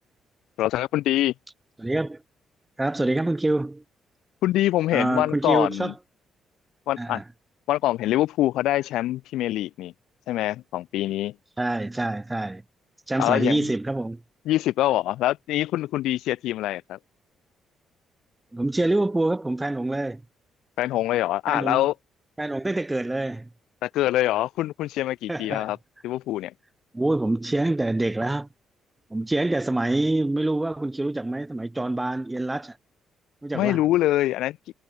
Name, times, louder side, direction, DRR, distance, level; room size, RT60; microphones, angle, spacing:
voice 1, 0.6-1.3 4.4-5.9 6.9-7.2 7.7-9.9 10.3-11.3 13.2-13.6 14.5-17.0 20.8-21.9 23.8-25.8 26.0-26.5 33.5-34.6, left 15 dB, 90° left, 2.4 m, -24 dB
voice 2, 1.8-2.2 2.8-3.8 4.9-5.9 7.0-7.2 11.6-12.6 13.1-14.2 18.5-20.2 21.5-21.8 22.4-23.5 25.3-25.7 26.9-28.5 29.1-32.8 33.4-33.8, right 2 dB, 15° right, 1.8 m, -26 dB
cardioid pair, 90°, 0 cm